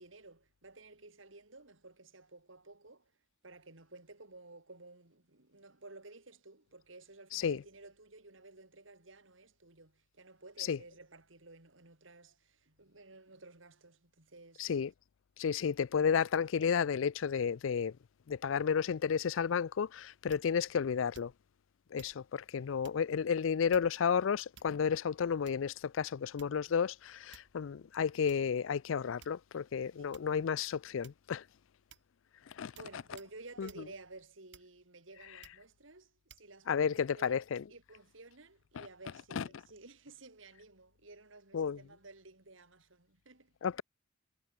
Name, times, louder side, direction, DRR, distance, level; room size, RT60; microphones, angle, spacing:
voice 1, 0.0-3.1 3.4-14.7 30.0-30.1 32.8-37.4 37.7-43.5, right 2 dB, 75° right, 3.5 m, -54 dB
voice 2, 7.3-7.6 10.6-10.8 14.6-14.9 15.4-18.0 18.3-21.3 21.9-31.4 32.5-32.7 33.6-33.7 36.7-37.6 38.8-38.9 39.4-39.5 41.5-41.8 43.6-43.8, left 7 dB, 75° left, 0.4 m, -32 dB
sound 1, 20.3-20.7 21.1-21.5 22.0-22.2 22.8-23.1 23.7-24.1 24.5-25.0 25.5-25.8 26.4-26.7 27.3-27.6 28.3-28.4 29.2-29.6 30.1-30.4 31.0-31.4 31.9-32.1 32.8-32.9 33.2-33.4 33.7-33.9 34.5-34.9 35.4-35.7 36.3-36.5, right 7 dB, 60° right, 4.9 m, -58 dB
head